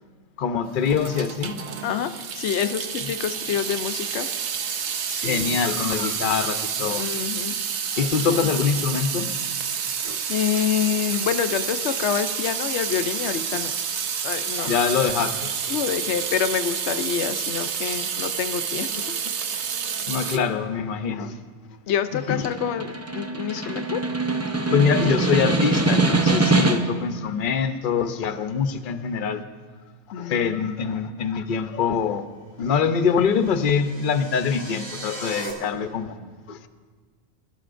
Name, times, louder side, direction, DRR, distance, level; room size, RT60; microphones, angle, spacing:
voice 1, 0.4-1.6 5.2-7.1 7.9-9.3 10.0-10.2 14.6-15.5 20.1-21.3 22.1-22.4 24.7-29.4 30.2-32.2 32.6-36.2 36.5-36.7, left 6 dB, 55° left, 9 dB, 0.8 m, -24 dB
Water tap faucet / Sink (filling or washing) / Drip, 0.8-20.4, right 7 dB, 85° right, 1.1 m, -29 dB
voice 2, 1.8-4.3 5.1-5.6 6.9-7.6 8.3-8.5 9.8-9.9 10.3-13.7 14.2-14.7 15.7-19.1 20.3-20.4 21.9-24.1 30.1-30.9, left 8 dB, 90° left, 10 dB, 0.9 m, -27 dB
Snare drum, 22.2-27.1, right 3 dB, 15° right, 0.6 m, -23 dB
sound 1, 32.9-35.5, right 1 dB, 55° right, 3.0 m, -38 dB
22.5 x 12.5 x 2.6 m, 1.5 s
omnidirectional pair, 1.1 m